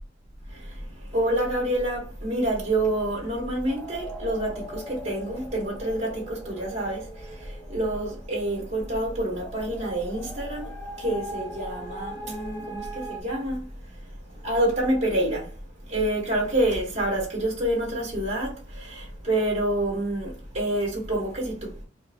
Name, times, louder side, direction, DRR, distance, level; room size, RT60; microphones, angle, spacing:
voice 1, 0.5-13.7 14.4-15.5 15.9-21.8, right 1 dB, 35° right, 1.2 m, -27 dB
sound 1, 3.7-13.2, equal, 10° left, 0.5 m, -41 dB
3.5 x 2.5 x 3.4 m
head